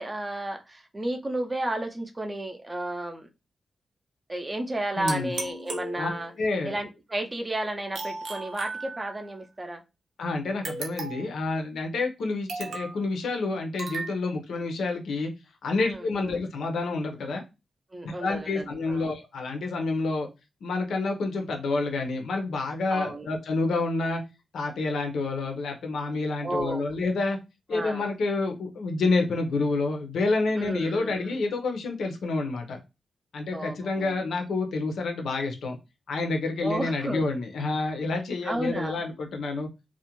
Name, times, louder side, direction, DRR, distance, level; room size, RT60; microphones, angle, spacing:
voice 1, 0.0-3.3 4.3-6.3 6.6-9.8 15.8-16.4 17.9-19.1 22.9-23.3 26.4-26.8 27.7-28.1 30.6-31.4 33.5-34.2 36.6-37.2 38.4-39.0, right 1 dB, 20° right, 0.4 m, -33 dB
voice 2, 5.0-5.3 6.0-6.1 6.4-6.7 10.2-15.3 15.6-17.4 18.0-20.3 20.6-24.2 24.5-27.4 27.7-32.8 33.3-35.8 36.1-39.7, left 3 dB, 90° left, 0.6 m, -28 dB
sound 1, 5.1-6.5 7.9-9.4 10.6-11.4 12.5-13.0 13.8-14.1, right 3 dB, 85° right, 0.6 m, -36 dB
2.4 x 2.1 x 2.9 m
wide cardioid pair, 160°, 0 cm